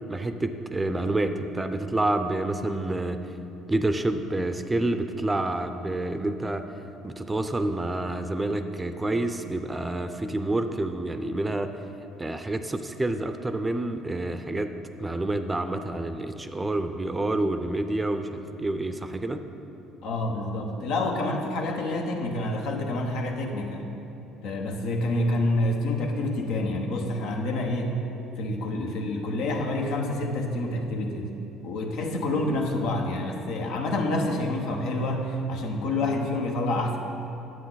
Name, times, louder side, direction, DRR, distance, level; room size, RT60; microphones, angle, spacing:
voice 1, 0.1-3.2 3.7-11.7 12.2-14.7 15.0-19.4, right 2 dB, 15° right, 8 dB, 0.5 m, -28 dB
voice 2, 20.0-23.9 24.4-28.0 28.4-31.3 31.6-37.0, left 1 dB, 75° left, 2 dB, 1.0 m, -28 dB
9.3 x 7.7 x 4.0 m, 2.9 s
supercardioid pair, 80°, 0 cm